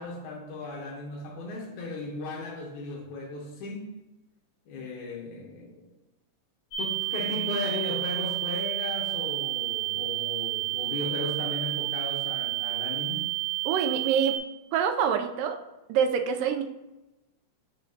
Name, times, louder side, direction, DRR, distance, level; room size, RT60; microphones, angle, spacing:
voice 1, 0.0-3.9 4.7-5.9 6.8-13.3, left 2 dB, 70° left, 0 dB, 2.4 m, -36 dB
sound 1, 6.7-14.4, right 20 dB, 30° left, 2.5 m, -30 dB
voice 2, 13.7-14.4 14.7-15.6 15.9-16.6, right 7 dB, 85° right, 6 dB, 2.3 m, -25 dB
9.9 x 4.1 x 2.8 m, 1.0 s
omnidirectional pair, 3.7 m